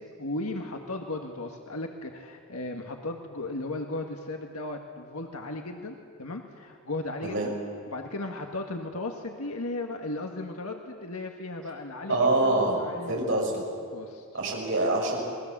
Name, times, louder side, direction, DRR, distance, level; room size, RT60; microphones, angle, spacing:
voice 1, 0.2-7.6 7.9-13.4 13.9-14.2, left 2 dB, 85° left, 3 dB, 1.7 m, -36 dB
voice 2, 12.1-12.8 13.1-13.6 14.3-15.2, right 2 dB, 60° right, -1 dB, 6.6 m, -25 dB
28.0 x 20.5 x 7.5 m, 2.2 s
head